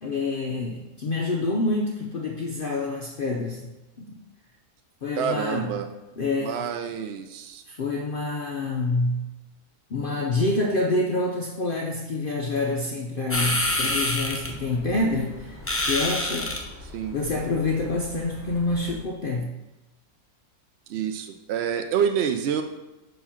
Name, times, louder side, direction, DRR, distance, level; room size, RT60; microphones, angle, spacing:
voice 1, 0.0-3.7 4.0-4.1 5.0-5.8 6.2-6.7 7.7-9.3 9.9-16.6 17.1-19.5, left 2 dB, 85° left, 1 dB, 0.4 m, -27 dB
voice 2, 5.2-5.9 6.4-7.6 16.9-17.2 20.9-22.6, right 7 dB, 85° right, 7 dB, 0.5 m, -27 dB
sound 1, 13.3-19.0, left 1 dB, 20° left, 0.3 m, -29 dB
7.1 x 3.0 x 5.6 m, 1.0 s
omnidirectional pair, 1.7 m